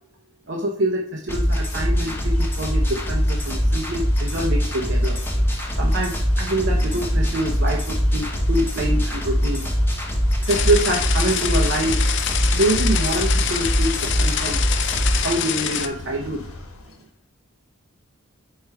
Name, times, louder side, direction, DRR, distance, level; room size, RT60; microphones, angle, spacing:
voice 1, 0.5-5.2 5.7-9.7 10.4-14.6 15.2-16.5, right 1 dB, 55° right, 0 dB, 0.7 m, -25 dB
sound 1, 1.3-15.3, equal, 10° left, 0.9 m, -22 dB
sound 2, 1.9-17.0, left 2 dB, 90° left, 1.0 m, -39 dB
sound 3, 10.5-15.9, left 9 dB, 55° left, 0.4 m, -26 dB
4.8 x 4.3 x 4.6 m, 0.65 s
head